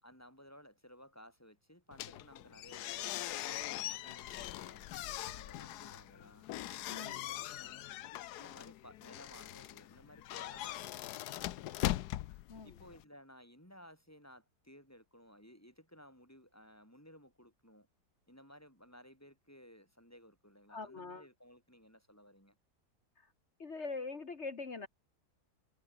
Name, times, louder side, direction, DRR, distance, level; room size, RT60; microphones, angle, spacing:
voice 1, 0.0-6.5 6.9-7.8 8.3-12.0 12.6-17.9 18.3-22.6, equal, 10° left, 6.8 m, -58 dB
sound 1, 1.9-13.0, left 14 dB, 80° left, 1.2 m, -41 dB
voice 2, 6.9-7.2 12.5-12.8 20.7-21.3 23.2-23.3 23.6-24.9, left 3 dB, 45° left, 1.9 m, -43 dB
omnidirectional pair, 1.7 m